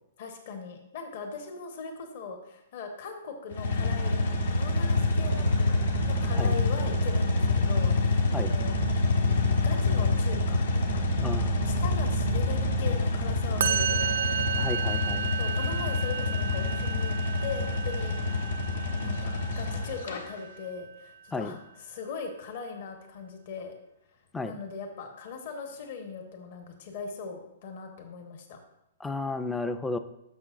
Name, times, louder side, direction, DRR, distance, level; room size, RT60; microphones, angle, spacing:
voice 1, 0.2-5.8 6.0-8.9 9.6-11.0 11.6-14.1 15.4-17.2 17.4-18.2 19.0-23.7 24.4-28.6, left 5 dB, 50° left, 5 dB, 1.1 m, -39 dB
sound 1, 3.5-20.2, left 2 dB, 75° left, 1.2 m, -27 dB
voice 2, 11.2-11.7 14.6-15.3 21.3-21.5 24.3-24.6 29.0-30.0, left 3 dB, 5° left, 10 dB, 0.3 m, -33 dB
Musical instrument, 13.6-20.9, right 7 dB, 75° right, 0.4 m, -33 dB
11.5 x 6.4 x 2.5 m, 0.85 s
hypercardioid pair, 165°, 0 cm